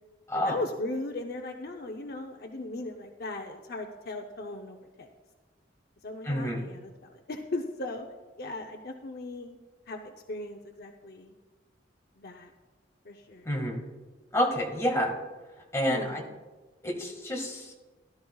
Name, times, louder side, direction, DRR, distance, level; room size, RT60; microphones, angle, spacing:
voice 1, 0.3-5.1 6.0-8.1 8.4-9.6 9.9-11.3 12.2-12.5 13.1-13.5 15.9-16.3, left 2 dB, 55° left, 3 dB, 0.7 m, -38 dB
voice 2, 6.2-6.6 13.4-13.8 14.3-15.1 15.7-16.2 16.8-17.7, equal, 15° left, -1 dB, 1.8 m, -28 dB
17.0 x 12.0 x 2.3 m, 1.3 s
head